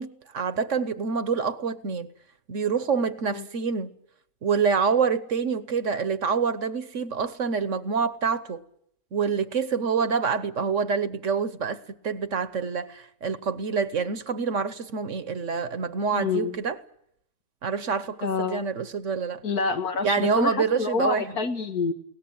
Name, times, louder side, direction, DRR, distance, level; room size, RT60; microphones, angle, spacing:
voice 1, 0.0-2.1 2.5-3.9 4.4-8.6 9.1-16.7 17.6-19.4 20.0-21.2, right 5 dB, 55° right, 1.3 m, -26 dB
voice 2, 16.1-16.6 18.2-18.6 19.4-21.9, left 4 dB, 75° left, 2.2 m, -27 dB
22.0 x 18.0 x 8.9 m
omnidirectional pair, 1.6 m